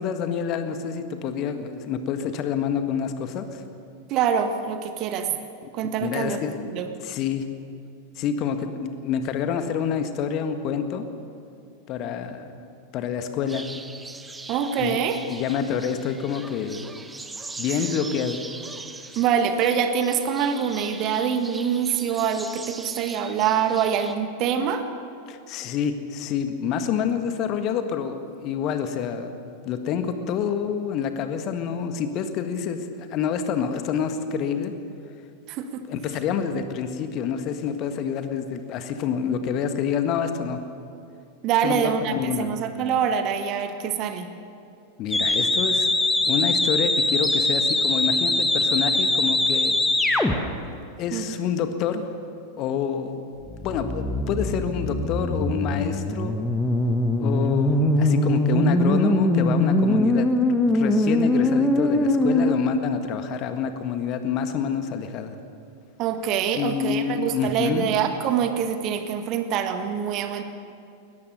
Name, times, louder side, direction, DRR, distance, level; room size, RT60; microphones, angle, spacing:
voice 1, 0.0-3.6 5.8-6.6 7.0-7.4 8.2-11.1 11.9-12.7 12.9-13.7 14.8-15.0 15.3-16.9 17.6-18.4 25.3-34.7 35.9-40.6 41.6-42.6 45.0-45.9 46.3-49.8 51.0-52.1 52.6-53.2 53.6-56.4 57.2-60.3 60.6-65.3 66.5-67.9, left 7 dB, 40° left, 8 dB, 1.7 m, -27 dB
voice 2, 4.1-5.4 5.7-6.9 14.5-15.2 19.2-24.9 35.5-35.8 41.4-44.3 51.1-51.4 66.0-70.4, right 8 dB, 40° right, 7 dB, 1.7 m, -25 dB
sound 1, 13.5-24.1, right 3 dB, 10° right, 1.3 m, -40 dB
sound 2, 45.1-50.3 53.4-62.5, left 1 dB, 5° left, 1.5 m, -22 dB
21.5 x 20.0 x 6.8 m, 2.5 s
figure-of-eight pair, 90°, 0 cm